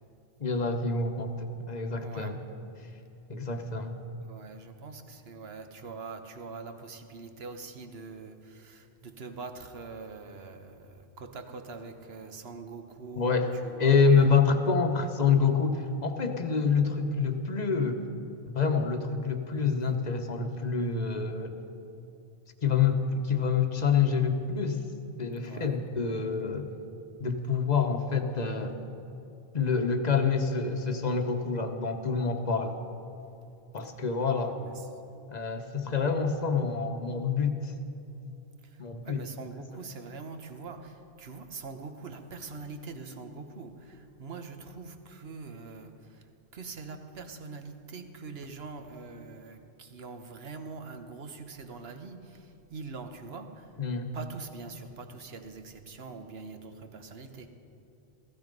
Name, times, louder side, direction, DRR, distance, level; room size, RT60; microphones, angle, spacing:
voice 1, 0.4-2.4 3.3-3.9 13.2-13.5 13.8-18.0 18.5-21.6 22.6-24.8 25.2-26.7 27.2-28.8 29.5-32.7 33.7-34.5 35.3-37.7 38.8-39.2 53.8-54.1, left 5 dB, 40° left, 6 dB, 1.1 m, -27 dB
voice 2, 2.0-2.4 4.2-14.3 25.4-25.8 33.8-33.9 34.3-34.9 38.6-53.8 54.1-57.5, right 4 dB, 70° right, 7 dB, 1.3 m, -43 dB
16.0 x 15.5 x 5.3 m, 2.7 s
omnidirectional pair, 1.1 m